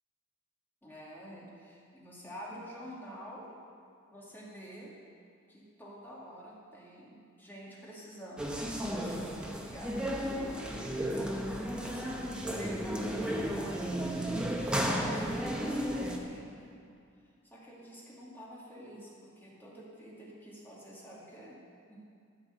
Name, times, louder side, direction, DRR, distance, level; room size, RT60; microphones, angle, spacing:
voice 1, 0.8-3.5 4.1-4.9 5.5-8.6 8.9-10.8 11.1-13.8 14.7-16.8 17.4-21.6 21.9-22.0, equal, 10° left, -6 dB, 2.2 m, -48 dB
sound 1, 8.4-16.2, equal, 5° right, 0.9 m, -33 dB
13.5 x 4.7 x 8.1 m, 2.4 s
head